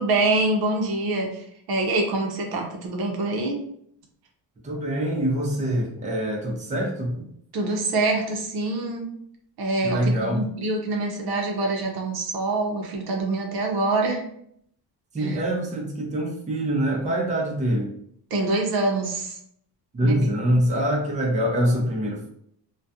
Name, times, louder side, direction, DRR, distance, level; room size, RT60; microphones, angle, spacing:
voice 1, 0.0-3.6 7.5-9.1 9.6-14.2 15.2-15.4 18.3-19.4 20.0-20.2, right 2 dB, 60° right, 1 dB, 0.7 m, -25 dB
voice 2, 4.6-7.2 9.8-10.4 15.1-17.9 19.9-22.3, right 1 dB, 15° right, -1 dB, 0.6 m, -24 dB
2.3 x 2.2 x 2.7 m, 0.69 s
cardioid pair, 105°, 44 cm